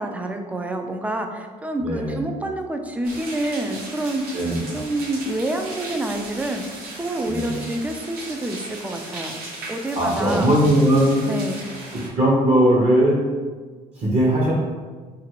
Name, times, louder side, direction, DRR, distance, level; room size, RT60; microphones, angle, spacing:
voice 1, 0.0-4.4 4.7-6.6 7.0-9.4 9.7-10.5 11.3-11.7, right 1 dB, 10° right, 4 dB, 0.3 m, -27 dB
voice 2, 1.8-2.2 4.3-4.6 7.3-7.6 9.9-11.3 11.9-13.2 14.0-14.5, right 1 dB, 40° right, -5 dB, 0.8 m, -19 dB
sound 1, 3.0-12.1, right 2 dB, 65° right, 1.0 m, -37 dB
2.9 x 2.5 x 2.9 m, 1.4 s
supercardioid pair, 80°, 17 cm